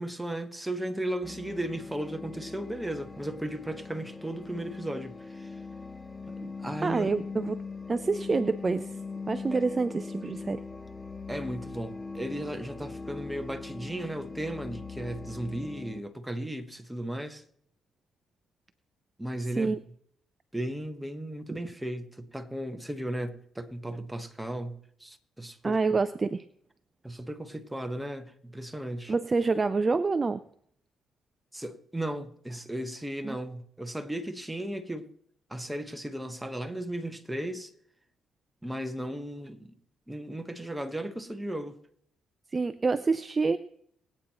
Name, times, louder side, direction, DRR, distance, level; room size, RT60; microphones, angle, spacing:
voice 1, 0.0-5.6 6.3-7.1 9.5-9.6 11.3-17.4 19.2-19.8 20.5-26.0 27.0-29.1 31.5-35.1 35.5-37.7 38.6-39.7 40.1-41.7, right 1 dB, 5° right, 1.2 m, -36 dB
sound 1, 1.2-16.0, left 4 dB, 15° left, 0.7 m, -41 dB
voice 2, 6.8-7.6 7.9-8.9 9.3-10.6 19.6-19.8 25.6-26.4 29.1-30.4 33.2-33.4 42.5-43.6, right 4 dB, 30° right, 0.5 m, -27 dB
21.5 x 8.9 x 3.0 m
cardioid pair, 90°, 0 cm